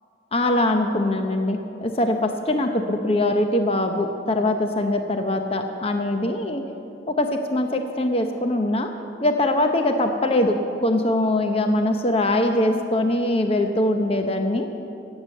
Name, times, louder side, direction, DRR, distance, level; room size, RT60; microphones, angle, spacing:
voice 1, 0.3-6.6 7.2-8.9 9.2-14.7, left 1 dB, 30° left, 5 dB, 0.7 m, -22 dB
15.0 x 8.1 x 8.3 m, 2.9 s
head